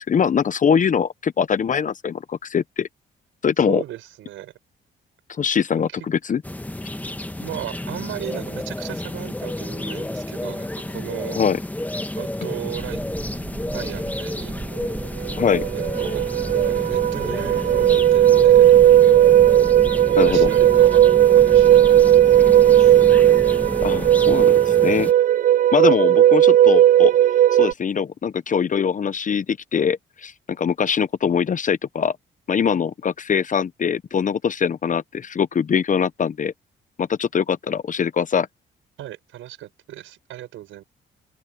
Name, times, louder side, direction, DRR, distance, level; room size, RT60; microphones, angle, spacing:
voice 1, 0.0-2.9 3.4-3.8 5.4-6.4 11.4-11.6 15.4-15.6 20.2-20.5 23.8-25.1 25.7-27.1 27.5-32.2 32.5-36.5 37.0-38.5, left 7 dB, 40° left, 0.8 m, -22 dB
voice 2, 3.7-4.5 5.9-6.0 7.4-11.4 12.2-13.0 13.7-14.6 15.7-16.3 16.7-18.7 20.1-22.9 39.0-40.8, right 14 dB, 85° right, 5.8 m, -36 dB
sound 1, 6.4-25.1, left 1 dB, 10° left, 1.4 m, -31 dB
sound 2, 12.7-24.5, right 3 dB, 20° right, 1.8 m, -36 dB
sound 3, 14.8-14.9 15.2-27.7, right 12 dB, 45° right, 0.4 m, -15 dB
open air
cardioid pair, 90°, 20 cm